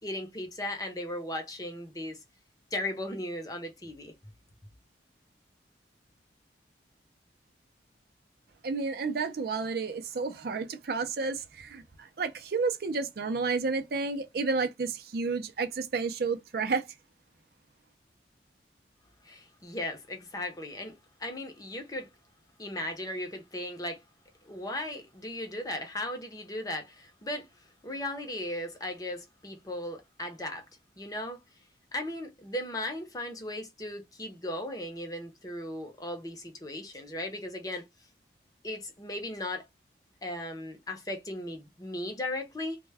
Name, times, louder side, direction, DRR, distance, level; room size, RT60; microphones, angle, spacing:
voice 1, 0.0-2.2 2.7-4.1 19.2-22.1 22.6-24.0 24.4-30.7 31.0-31.4 31.9-37.9 38.6-39.6 40.2-42.8, left 1 dB, 20° left, 0.6 m, -37 dB
voice 2, 8.6-16.9, right 4 dB, 55° right, 0.4 m, -31 dB
2.1 x 2.1 x 3.3 m
head